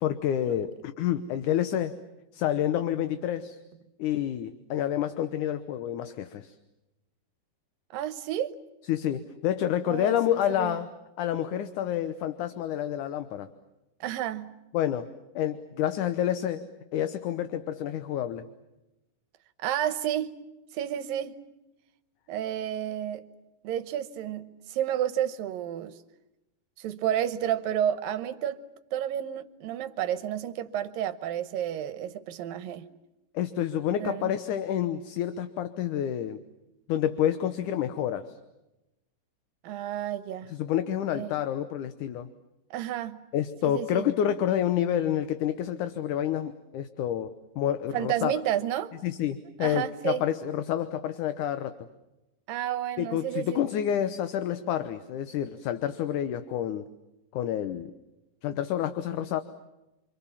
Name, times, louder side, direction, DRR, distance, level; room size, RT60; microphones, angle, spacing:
voice 1, 0.0-2.0 2.3-3.6 4.0-6.5 8.9-10.9 11.2-13.5 14.7-15.1 15.4-18.5 33.3-36.4 36.9-38.3 40.5-42.3 43.3-48.3 49.0-51.8 53.0-56.9 57.3-57.9 58.4-59.4, left 10 dB, 70° left, 2.4 m, -28 dB
voice 2, 7.9-8.5 9.9-10.8 14.0-14.6 19.6-20.4 20.7-21.4 22.3-23.3 23.6-26.0 26.8-28.6 28.9-32.9 34.0-34.3 39.6-40.5 41.1-41.3 42.7-43.2 43.6-44.1 47.9-48.9 49.6-50.2 52.5-53.6, right 11 dB, 90° right, 2.9 m, -31 dB
29.0 x 25.0 x 7.3 m
omnidirectional pair, 3.9 m